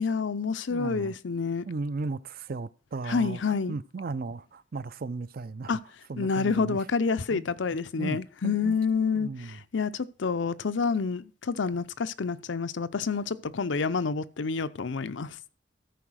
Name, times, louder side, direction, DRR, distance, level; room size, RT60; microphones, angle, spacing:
voice 1, 0.0-1.6 3.1-3.7 5.7-5.8 6.2-9.3 9.7-15.3, left 5 dB, 85° left, 0.6 m, -28 dB
voice 2, 0.7-1.2 1.7-5.8 6.1-6.8 7.3-7.5 8.0-8.8 9.1-9.6, right 3 dB, 50° right, 0.5 m, -36 dB
13.5 x 4.9 x 6.3 m
head